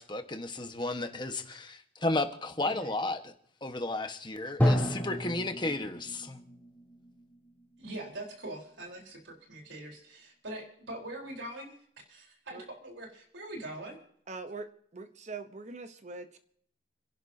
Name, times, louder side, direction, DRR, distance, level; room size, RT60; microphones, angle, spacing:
voice 1, 0.0-3.3 3.6-6.4, left 2 dB, 25° left, 1.3 m, -33 dB
Drum, 4.6-8.3, equal, 10° left, 3.2 m, -31 dB
voice 2, 7.8-11.7 12.1-14.0, right 1 dB, 80° right, 4.1 m, -43 dB
voice 3, 14.3-16.4, right 3 dB, 40° right, 0.9 m, -42 dB
29.5 x 11.5 x 2.8 m
head